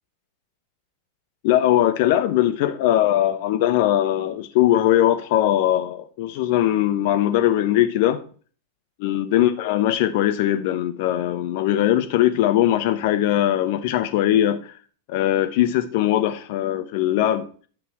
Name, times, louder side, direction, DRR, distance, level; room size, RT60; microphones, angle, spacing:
voice 1, 1.4-8.2 9.0-14.6 15.1-17.5, left 12 dB, 50° left, 0.9 m, -20 dB
11.0 x 8.3 x 4.4 m
figure-of-eight pair, 90°, 0 cm